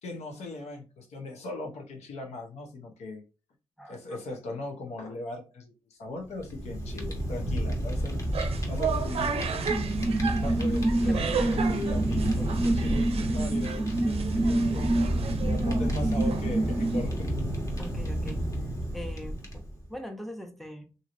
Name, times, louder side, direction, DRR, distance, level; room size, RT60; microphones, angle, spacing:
voice 1, 0.0-3.2 3.8-8.2 8.7-9.4 10.4-14.9 15.4-17.3, left 2 dB, 90° left, 2 dB, 0.8 m, -39 dB
voice 2, 3.8-4.2 11.0-11.6 12.4-12.7 17.8-18.4 18.9-21.0, equal, ahead, 3 dB, 0.8 m, -42 dB
Fire, 6.3-19.9, right 1 dB, 30° left, 1.2 m, -31 dB
sound 1, 8.2-17.2, right 6 dB, 65° right, 0.5 m, -35 dB
sound 2, 9.7-17.0, right 2 dB, 30° right, 0.8 m, -28 dB
2.9 x 2.7 x 2.5 m, 0.33 s
cardioid pair, 60°, 11 cm